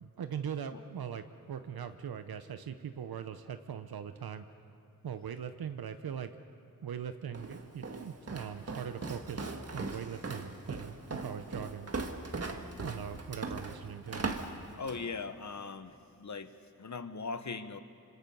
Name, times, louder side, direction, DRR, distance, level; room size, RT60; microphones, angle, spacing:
voice 1, 0.0-4.5 5.0-6.3 6.8-11.9 12.8-14.2, right 8 dB, 85° right, 9 dB, 0.8 m, -41 dB
Walk footsteps, 7.3-15.1, right 3 dB, 45° right, 1.6 m, -39 dB
voice 2, 14.8-17.8, left 4 dB, 50° left, 10 dB, 1.0 m, -40 dB
26.5 x 26.0 x 5.5 m, 2.5 s
wide cardioid pair, 110°, 36 cm